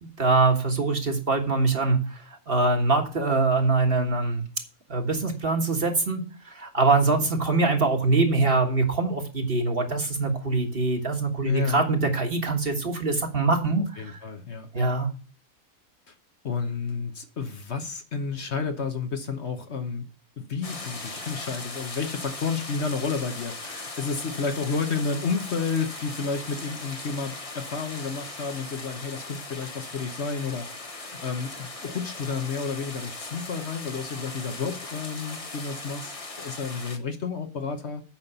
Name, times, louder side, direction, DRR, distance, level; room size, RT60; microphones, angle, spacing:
voice 1, 0.0-2.0 2.5-4.4 4.9-6.2 6.6-14.2 14.7-15.1, right 3 dB, 40° right, 1.7 m, -23 dB
voice 2, 11.4-11.8 14.0-14.9 16.4-20.0 20.4-30.7 30.9-38.0, left 5 dB, 55° left, 1.3 m, -31 dB
sound 1, 20.6-37.0, left 3 dB, 25° left, 1.1 m, -39 dB
8.8 x 5.8 x 6.8 m
omnidirectional pair, 1.5 m